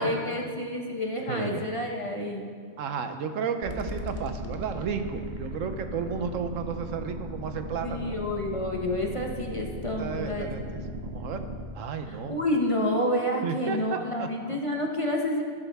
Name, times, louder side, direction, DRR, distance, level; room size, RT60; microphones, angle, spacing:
voice 1, 0.0-2.5 7.8-10.5 12.1-15.4, left 1 dB, 30° left, 0 dB, 0.9 m, -29 dB
voice 2, 1.3-1.6 2.8-8.1 10.0-11.4 11.8-12.4 13.4-14.6, right 6 dB, 75° right, 8 dB, 1.1 m, -33 dB
sound 1, 3.6-11.6, right 1 dB, 40° right, 1.1 m, -37 dB
13.0 x 11.0 x 3.5 m, 2.1 s
omnidirectional pair, 1.4 m